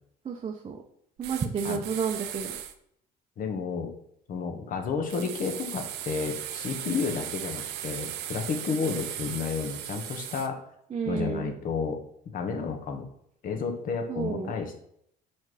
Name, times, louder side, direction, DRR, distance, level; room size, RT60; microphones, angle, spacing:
voice 1, 0.2-0.8 1.2-2.5 10.9-11.5 14.1-14.5, right 6 dB, 35° right, -1 dB, 0.7 m, -31 dB
sound 1, 1.2-2.7 5.1-10.5, right 11 dB, 90° right, 0.6 m, -37 dB
voice 2, 3.4-3.9 4.3-10.6 11.1-12.0 12.3-13.1 13.4-14.8, left 5 dB, 55° left, 4 dB, 1.2 m, -31 dB
4.6 x 4.6 x 4.8 m, 0.71 s
cardioid pair, 110°, 17 cm